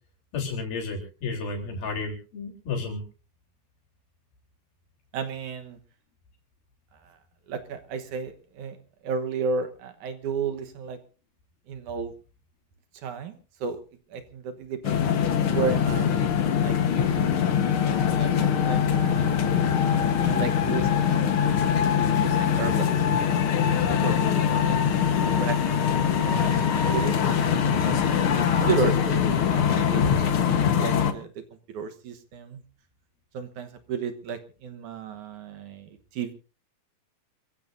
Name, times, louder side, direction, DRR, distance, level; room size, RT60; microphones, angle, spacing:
voice 1, 0.3-3.0, left 4 dB, 85° left, 1 dB, 5.6 m, -32 dB
voice 2, 5.1-5.8 7.0-7.2 7.5-8.8 9.0-11.0 11.7-12.1 12.9-13.8 14.1-15.0 15.5-16.1 16.6-17.5 17.7-19.7 20.2-23.0 23.5-24.9 25.4-27.2 27.7-30.0 30.5-31.3 31.7-32.6 33.3-36.3, right 5 dB, 65° right, 8 dB, 2.4 m, -33 dB
sound 1, 14.8-31.1, left 8 dB, 60° left, 1.5 m, -23 dB
27.0 x 15.5 x 2.7 m, 0.35 s
omnidirectional pair, 4.1 m